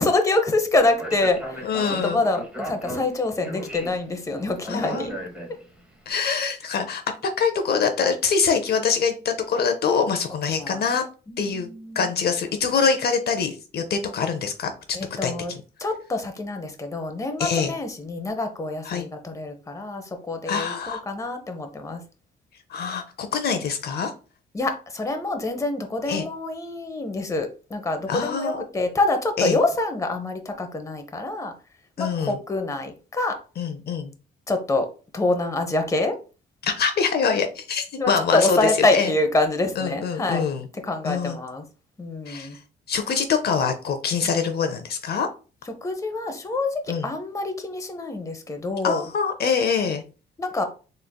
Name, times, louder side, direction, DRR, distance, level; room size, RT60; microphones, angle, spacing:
voice 1, 0.0-1.7 2.0-5.2 6.3-6.4 10.5-10.8 11.3-12.1 14.9-15.5 15.8-22.0 24.5-31.5 32.0-33.4 34.5-34.9 35.1-36.1 38.0-40.4 40.8-41.6 42.0-42.6 45.7-49.1 50.4-50.6, left 2 dB, 15° left, 0.7 m, -26 dB
Speech, 0.8-5.9, right 1 dB, 5° right, 1.0 m, -36 dB
voice 2, 1.6-2.2 4.7-5.1 6.1-11.0 11.4-11.7 12.0-14.7 15.2-15.3 17.4-17.7 18.9-19.1 20.5-21.0 22.7-24.1 26.1-26.2 28.1-28.7 29.4-29.6 32.0-32.4 33.6-34.1 36.6-39.1 39.8-40.7 41.0-41.4 42.3-42.5 42.9-45.3 46.9-47.1 48.8-50.0, left 6 dB, 55° left, 0.6 m, -24 dB
3.7 x 3.2 x 2.2 m
cardioid pair, 90°, 20 cm